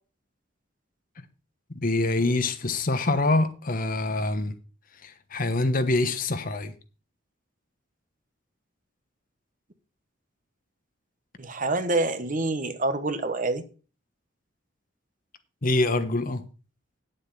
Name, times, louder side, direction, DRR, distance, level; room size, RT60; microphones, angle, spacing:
voice 1, 1.7-4.6 5.0-6.7 15.6-16.5, left 2 dB, 45° left, 1.2 m, -25 dB
voice 2, 11.4-13.6, right 2 dB, 45° right, 1.1 m, -26 dB
9.7 x 7.8 x 5.5 m
head